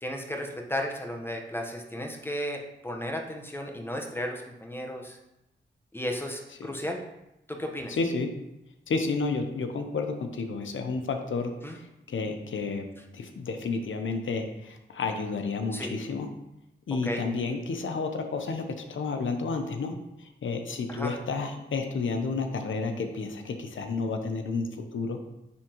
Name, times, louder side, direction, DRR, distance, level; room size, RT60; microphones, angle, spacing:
voice 1, 0.0-5.2 5.9-7.0 7.5-7.9 11.6-11.8 15.7-15.9 17.0-17.2 20.9-21.2, equal, 10° left, 1 dB, 1.1 m, -34 dB
voice 2, 7.9-8.3 8.9-12.9 13.1-16.3 16.9-19.9 20.2-25.2, left 4 dB, 85° left, 5 dB, 0.7 m, -31 dB
9.7 x 3.6 x 3.0 m, 0.89 s
cardioid pair, 55°, 20 cm